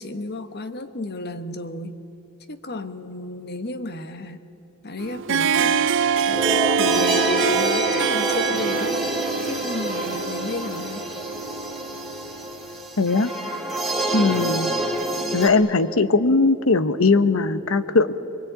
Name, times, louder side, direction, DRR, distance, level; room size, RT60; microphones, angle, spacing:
voice 1, 0.0-2.0 2.5-4.4 4.8-5.9 6.7-9.0 9.4-11.1, left 2 dB, 50° left, 10 dB, 1.2 m, -32 dB
Harp, 5.0-12.7, right 7 dB, 60° right, 0.5 m, -25 dB
sound 1, 6.3-15.5, right 1 dB, ahead, 2.9 m, -27 dB
voice 2, 13.0-13.3 14.1-14.7 15.3-18.2, left 3 dB, 75° left, 12 dB, 1.0 m, -19 dB
24.5 x 23.0 x 9.1 m, 3.0 s
head